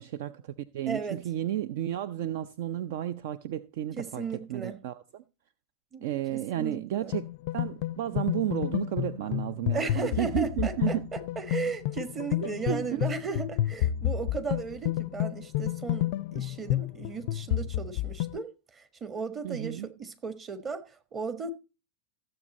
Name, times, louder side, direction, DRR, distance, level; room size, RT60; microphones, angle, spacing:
voice 1, 0.0-4.2 4.5-5.2 6.0-7.2 7.5-11.0 12.4-13.0 19.4-19.9, right 12 dB, 50° right, 0.5 m, -32 dB
voice 2, 0.9-1.2 4.0-4.8 5.9-7.2 9.7-21.5, right 4 dB, 20° right, 1.5 m, -36 dB
sound 1, 7.1-18.4, left 13 dB, 50° left, 0.4 m, -30 dB
14.5 x 7.7 x 4.1 m
figure-of-eight pair, 90°, 0 cm